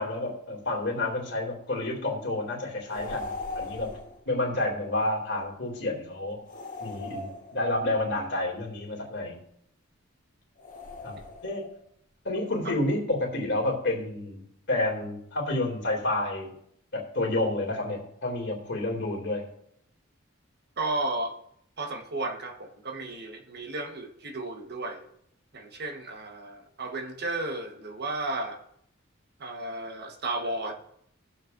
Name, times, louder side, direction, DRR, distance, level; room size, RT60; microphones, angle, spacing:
voice 1, 0.0-3.9 4.3-6.4 6.8-9.4 11.0-11.2 11.4-11.6 12.2-16.5 16.9-19.4, left 2 dB, 60° left, 0 dB, 2.5 m, -29 dB
sound 1, 2.9-4.2 6.5-7.9 10.6-11.7, left 3 dB, 40° left, 1.3 m, -39 dB
voice 2, 20.8-21.3 21.8-25.0 25.5-28.6 29.4-30.7, right 2 dB, 55° right, 3 dB, 1.2 m, -33 dB
18.5 x 7.2 x 2.5 m, 0.71 s
head